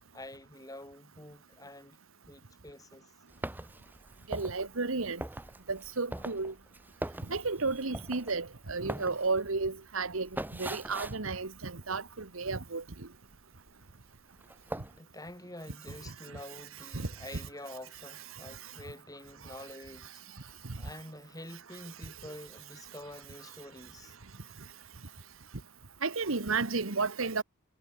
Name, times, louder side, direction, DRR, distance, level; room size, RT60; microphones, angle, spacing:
voice 1, 0.1-2.0 2.3-3.1 15.0-24.2, left 1 dB, 15° left, 5.9 m, -48 dB
sound 1, 3.3-12.5 12.8-13.8 14.1-15.0, right 1 dB, 10° right, 0.8 m, -42 dB
voice 2, 4.3-5.2 5.7-6.5 7.2-13.1 16.1-16.2 16.9-17.1 18.3-18.7 19.5-19.6 20.6-20.8 22.0-22.1 26.0-27.4, right 4 dB, 80° right, 1.5 m, -33 dB
head